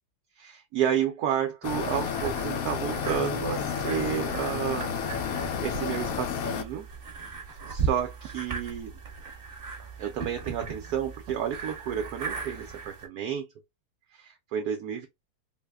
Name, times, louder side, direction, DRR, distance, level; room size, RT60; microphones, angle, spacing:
voice 1, 0.4-5.1 5.4-6.9 7.5-8.9 10.0-13.5 14.1-15.1, right 9 dB, 70° right, 1.0 m, -31 dB
sound 1, 1.6-6.6, left 7 dB, 70° left, 0.8 m, -31 dB
sound 2, 1.8-13.1, right 5 dB, 35° right, 1.1 m, -38 dB
3.9 x 2.1 x 3.4 m
omnidirectional pair, 1.9 m